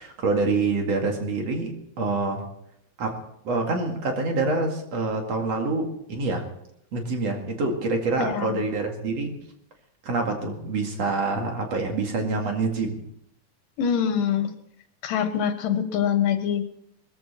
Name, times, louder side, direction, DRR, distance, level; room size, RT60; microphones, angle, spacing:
voice 1, 0.0-2.4 3.0-3.2 3.4-6.5 6.9-9.4 10.0-13.0, right 3 dB, 55° right, 3 dB, 3.1 m, -26 dB
voice 2, 8.2-8.6 13.8-14.5 15.0-16.6, left 8 dB, 85° left, 8 dB, 3.1 m, -24 dB
21.0 x 14.5 x 4.3 m, 0.75 s
omnidirectional pair, 3.7 m